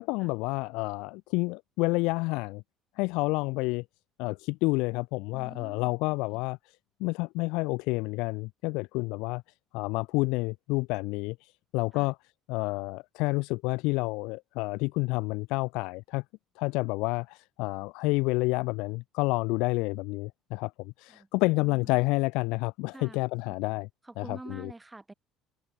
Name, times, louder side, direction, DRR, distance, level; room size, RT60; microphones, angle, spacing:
voice 1, 0.0-2.6 3.0-3.8 4.2-6.6 7.0-9.4 9.7-12.2 12.5-16.2 16.6-23.9 24.2-24.7, left 25 dB, 85° left, 0.5 m, -29 dB
voice 2, 5.3-5.9 6.3-6.4 11.9-12.1 21.1-21.3 21.6-22.0 22.9-23.2 23.5-23.6 24.0-25.1, right 2 dB, 10° right, 3.4 m, -47 dB
cardioid pair, 150°, 0 cm